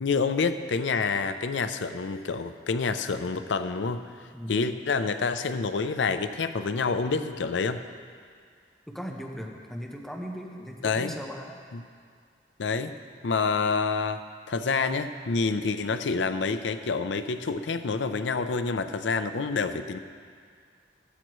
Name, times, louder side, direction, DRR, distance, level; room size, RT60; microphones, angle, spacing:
voice 1, 0.0-4.0 4.5-7.8 10.8-11.1 11.7-11.8 12.6-12.9 13.2-20.0, left 4 dB, 80° left, 10 dB, 0.5 m, -28 dB
voice 2, 8.9-11.6, equal, ahead, -1 dB, 0.9 m, -38 dB
15.5 x 12.5 x 3.1 m, 2.1 s
head